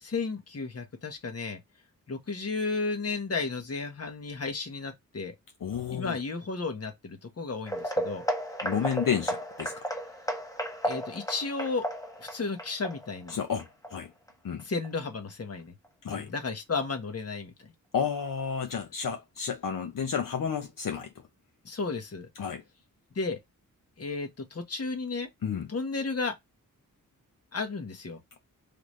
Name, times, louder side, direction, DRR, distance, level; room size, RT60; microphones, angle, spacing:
voice 1, 0.0-1.6 2.1-5.3 5.9-8.2 10.8-11.8 12.2-13.4 14.6-15.7 16.1-17.7 21.6-22.3 23.1-23.4 24.0-25.3 25.7-26.3 27.5-28.2, left 4 dB, 45° left, 1.3 m, -33 dB
voice 2, 5.6-6.2 8.6-9.7 13.3-14.1 14.4-14.6 16.0-16.3 17.9-21.1 22.4-22.6 25.4-25.7, left 7 dB, 70° left, 0.9 m, -31 dB
sound 1, 7.7-14.3 14.6-14.9 15.3-15.4 15.8-15.9, equal, 10° left, 1.2 m, -34 dB
3.8 x 3.5 x 3.2 m
cardioid pair, 75°, 34 cm